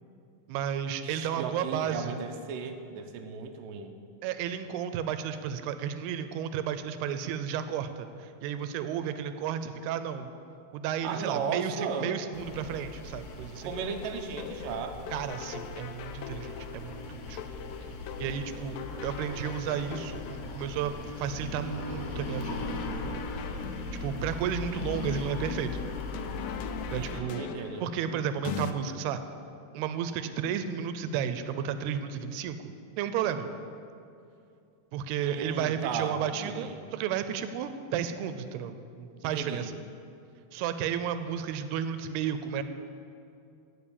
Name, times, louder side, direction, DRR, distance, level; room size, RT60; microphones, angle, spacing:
voice 1, 0.5-2.2 4.2-10.3 10.7-13.7 15.1-17.4 18.2-20.9 21.2-22.7 24.0-25.7 26.9-27.5 27.8-29.2 29.7-32.6 33.0-33.5 34.9-39.7 40.5-42.6, right 8 dB, 90° right, 10 dB, 2.6 m, -33 dB
voice 2, 1.0-4.0 11.0-12.2 13.6-15.0 26.9-27.8 35.2-36.8 39.2-39.7, right 5 dB, 75° right, 4 dB, 2.2 m, -35 dB
sound 1, 12.3-27.2, left 2 dB, 70° left, 2.7 m, -39 dB
sound 2, 13.7-28.7, left 9 dB, 90° left, 2.7 m, -42 dB
15.5 x 5.3 x 8.6 m, 2.6 s
omnidirectional pair, 4.6 m